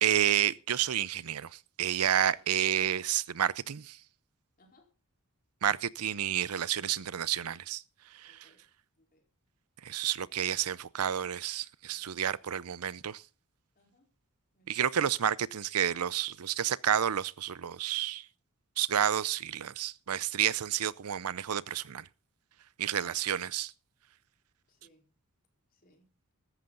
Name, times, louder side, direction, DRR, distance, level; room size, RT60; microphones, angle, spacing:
voice 1, 0.0-1.5 1.8-4.0 5.6-7.8 8.2-8.5 9.8-13.2 14.7-18.2 18.8-22.0 22.8-23.7, right 10 dB, 85° right, 0.6 m, -30 dB
voice 2, 2.2-2.5 4.6-4.9 8.3-8.6 9.0-9.2 11.9-12.1 13.8-14.1 14.5-14.8 22.9-23.2 24.7-25.1 25.7-26.1, left 2 dB, 40° left, 4.3 m, -63 dB
14.5 x 13.5 x 3.9 m
head